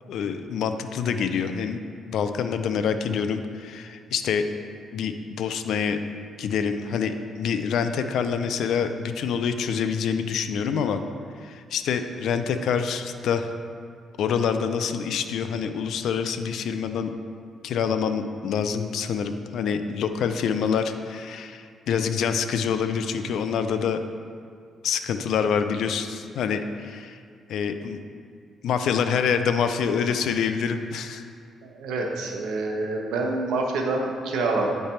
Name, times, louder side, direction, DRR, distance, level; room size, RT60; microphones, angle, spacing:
voice 1, 0.1-1.8 2.0-4.4 4.9-6.0 6.4-11.0 11.4-13.5 14.2-17.1 17.6-24.0 24.8-27.2 27.5-28.0 28.6-31.2, left 6 dB, 75° left, 8 dB, 0.4 m, -26 dB
voice 2, 31.6-34.7, right 3 dB, 90° right, 1 dB, 0.9 m, -27 dB
9.0 x 3.3 x 4.3 m, 2.1 s
cardioid pair, 95°, 0 cm